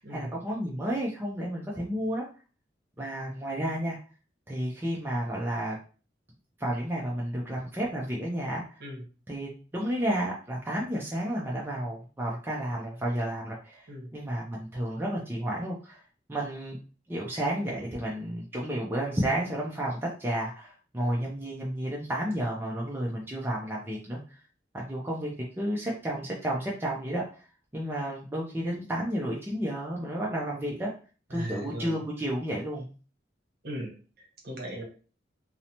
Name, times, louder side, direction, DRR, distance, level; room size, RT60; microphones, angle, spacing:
voice 1, 0.0-2.2 3.0-4.0 4.5-5.8 6.6-8.8 9.3-16.0 16.3-16.8 17.1-24.2 24.7-27.3 27.7-30.9 31.3-32.9, right 1 dB, 10° right, -4 dB, 0.4 m, -31 dB
voice 2, 31.3-32.0 33.6-34.8, equal, 55° right, 0 dB, 0.9 m, -38 dB
2.6 x 2.0 x 2.8 m, 0.37 s
head